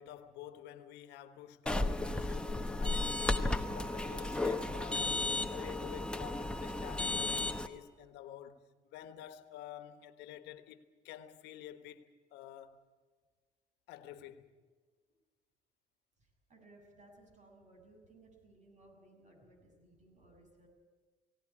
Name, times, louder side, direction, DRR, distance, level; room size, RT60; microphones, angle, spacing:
voice 1, 0.0-12.8 13.9-14.5, left 11 dB, 90° left, 1.4 m, -50 dB
sound 1, 1.7-7.7, left 2 dB, 5° left, 1.1 m, -34 dB
voice 2, 16.2-20.7, right 2 dB, 45° right, 7.2 m, -61 dB
19.0 x 17.5 x 9.9 m
cardioid pair, 110°, 17 cm